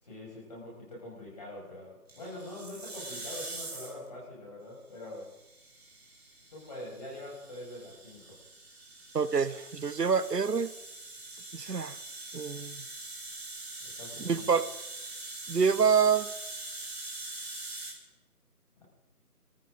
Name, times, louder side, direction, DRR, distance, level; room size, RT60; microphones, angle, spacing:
voice 1, 0.0-5.3 6.5-8.4 13.8-14.5, left 1 dB, 25° left, -4 dB, 6.2 m, -44 dB
sound 1, 2.1-4.1 5.1-17.9, right 2 dB, 40° right, 3.7 m, -43 dB
voice 2, 9.1-10.7 11.5-12.0 12.3-12.8 14.2-14.7 15.5-16.3, right 6 dB, 85° right, 15 dB, 1.0 m, -26 dB
26.0 x 14.0 x 3.9 m, 0.98 s
figure-of-eight pair, 170°, 47 cm